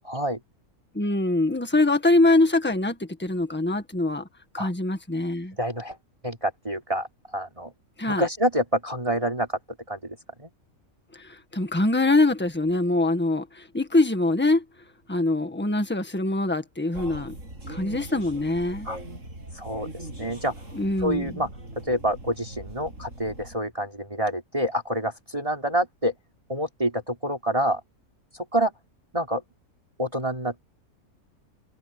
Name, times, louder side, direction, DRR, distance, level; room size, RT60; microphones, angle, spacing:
voice 1, 0.1-0.4 4.6-4.7 5.6-6.0 6.2-7.1 7.3-7.7 8.1-9.6 9.9-10.5 18.9-19.0 19.6-20.5 21.0-21.5 21.8-26.1 26.5-27.8 28.3-28.7 29.1-29.4 30.0-30.6, equal, 20° right, 3.6 m, -27 dB
voice 2, 0.9-4.3 4.5-5.5 8.0-8.3 11.1-14.6 15.1-17.3 17.7-18.9 20.7-21.4, left 2 dB, 5° left, 1.5 m, -23 dB
sound 1, 16.9-23.6, right 1 dB, 55° right, 7.8 m, -40 dB
omnidirectional pair, 1.6 m